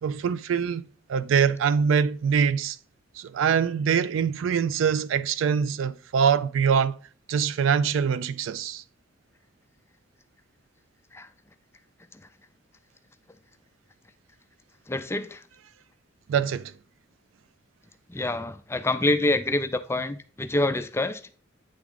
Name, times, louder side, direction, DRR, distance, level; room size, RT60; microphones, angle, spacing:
voice 1, 0.0-0.8 1.1-2.8 3.2-6.9 7.3-8.8 16.3-16.7, right 7 dB, 90° right, 0.3 m, -24 dB
voice 2, 14.9-15.4 18.1-21.2, left 2 dB, 15° left, 0.4 m, -26 dB
8.8 x 3.6 x 3.5 m
head